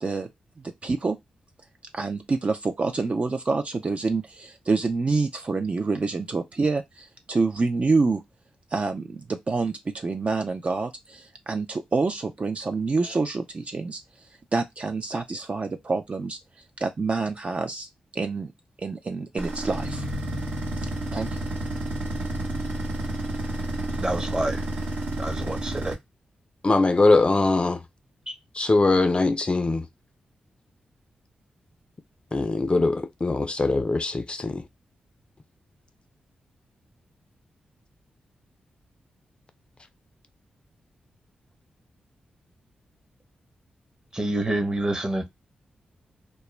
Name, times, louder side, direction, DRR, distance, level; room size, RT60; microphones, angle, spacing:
voice 1, 0.0-0.3 0.6-1.2 1.9-8.2 8.7-14.0 14.5-16.4 16.8-18.5 18.8-20.1 21.1-21.3, right 3 dB, 40° right, 0.3 m, -27 dB
sound 1, 19.4-25.9, right 1 dB, 90° right, 0.8 m, -30 dB
voice 2, 24.0-24.6 25.2-26.0 28.3-28.4 44.1-45.3, right 1 dB, 25° right, 0.8 m, -27 dB
voice 3, 26.6-27.8 28.5-29.9 32.3-34.6, left 3 dB, 35° left, 0.4 m, -22 dB
2.2 x 2.0 x 3.0 m
supercardioid pair, 40°, 3 cm